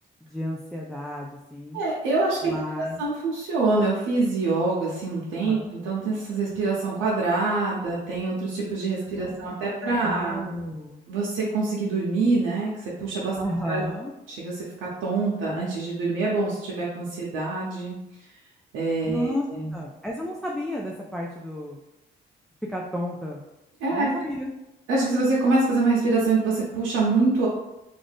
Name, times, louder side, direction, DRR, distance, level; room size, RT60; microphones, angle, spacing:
voice 1, 0.2-1.8 2.4-3.0 5.5-5.8 9.1-9.5 9.8-11.0 13.3-14.1 19.0-19.5 19.7-21.8 22.7-23.4 23.9-24.5, equal, ahead, -2 dB, 0.3 m, -32 dB
voice 2, 1.7-10.4 11.1-13.4 13.7-13.8 14.3-18.0 18.7-19.7 23.8-24.1 24.9-27.5, right 3 dB, 90° right, -5 dB, 0.7 m, -25 dB
2.6 x 2.3 x 3.4 m, 0.93 s
cardioid pair, 90°, 20 cm